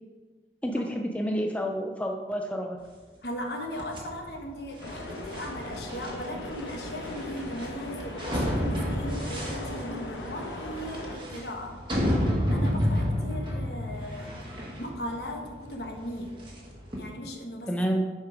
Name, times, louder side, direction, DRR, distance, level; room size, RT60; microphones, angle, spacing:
voice 1, 0.6-2.9 17.7-18.0, equal, 10° left, 2 dB, 0.4 m, -29 dB
voice 2, 3.2-11.8 12.5-14.3 14.8-16.4 17.0-17.7, equal, 65° left, 2 dB, 1.1 m, -37 dB
sound 1, 3.8-17.0, equal, 25° right, 1.2 m, -31 dB
sound 2, 4.8-11.1, left 1 dB, 85° left, 1.0 m, -39 dB
7.1 x 4.6 x 4.9 m, 1.4 s
head